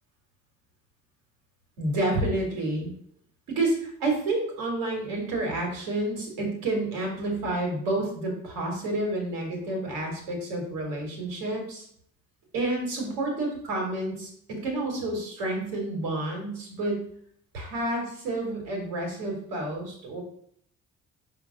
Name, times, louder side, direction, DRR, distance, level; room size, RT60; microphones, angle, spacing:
voice 1, 1.8-2.9 3.6-11.8 12.5-17.0 17.5-20.2, right 2 dB, 80° right, 0 dB, 2.3 m, -29 dB
5.5 x 3.6 x 5.8 m, 0.65 s
hypercardioid pair, 50°, 38 cm